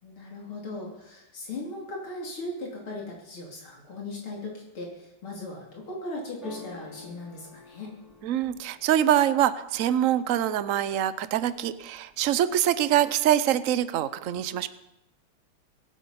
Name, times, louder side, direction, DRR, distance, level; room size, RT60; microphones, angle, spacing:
voice 1, 0.0-7.9, left 2 dB, 75° left, -2 dB, 3.8 m, -38 dB
sound 1, 6.4-10.3 10.7-11.3 11.6-12.4, left 4 dB, ahead, 4.3 m, -49 dB
voice 2, 8.2-14.7, right 11 dB, 70° right, 14 dB, 0.7 m, -24 dB
25.0 x 8.5 x 5.6 m, 0.90 s
omnidirectional pair, 2.3 m